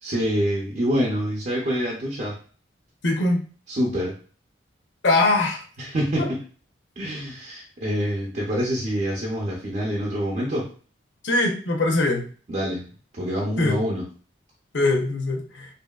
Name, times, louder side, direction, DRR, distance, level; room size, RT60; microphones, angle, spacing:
voice 1, 0.0-2.3 3.7-4.1 5.8-6.4 7.0-10.7 12.5-12.8 13.1-14.1, equal, 40° right, -4 dB, 0.6 m, -26 dB
voice 2, 3.0-3.4 5.0-5.6 11.2-12.2 13.6-13.8 14.7-15.4, left 2 dB, 75° left, 1 dB, 0.7 m, -21 dB
2.7 x 2.6 x 2.3 m, 0.41 s
head